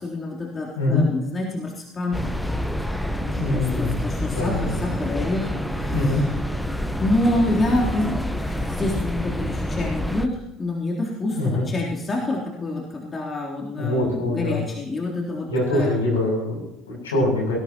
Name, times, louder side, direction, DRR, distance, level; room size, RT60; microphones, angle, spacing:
voice 1, 0.0-2.2 3.2-6.3 7.0-16.0, left 2 dB, 25° left, -3 dB, 3.5 m, -27 dB
sound 1, 2.1-10.3, equal, ahead, 1.3 m, -27 dB
voice 2, 3.4-3.9 4.3-4.7 5.9-6.2 11.3-11.6 13.8-14.6 15.5-17.6, left 2 dB, 75° left, -2 dB, 7.6 m, -23 dB
20.0 x 17.0 x 3.0 m, 0.87 s
figure-of-eight pair, 60°, 0 cm